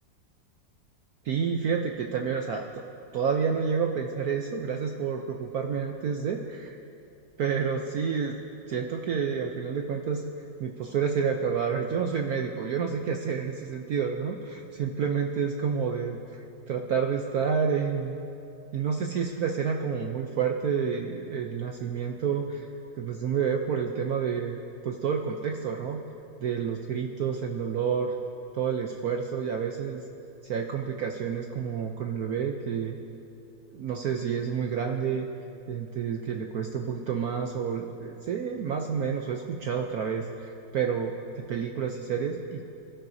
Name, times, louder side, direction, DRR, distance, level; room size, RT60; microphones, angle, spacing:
voice 1, 1.2-2.7 3.1-6.4 7.4-8.4 8.7-10.2 10.6-18.2 18.7-22.7 23.0-26.0 26.4-28.1 28.5-30.0 30.5-33.0 33.7-35.3 35.7-42.6, right 6 dB, 65° right, 2 dB, 1.0 m, -29 dB
25.5 x 12.5 x 2.7 m, 2.8 s
omnidirectional pair, 2.1 m